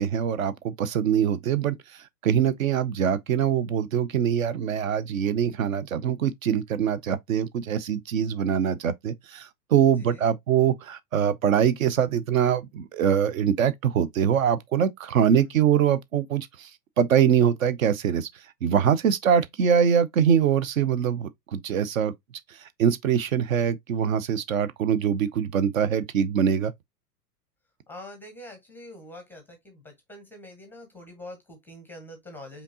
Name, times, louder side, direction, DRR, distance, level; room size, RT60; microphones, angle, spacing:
voice 1, 0.0-16.7 17.0-18.3 18.6-22.1 22.5-26.7, right 8 dB, 55° right, 0.6 m, -23 dB
voice 2, 27.9-32.6, left 1 dB, 5° left, 0.6 m, -45 dB
5.1 x 2.7 x 2.6 m
figure-of-eight pair, 100°, 49 cm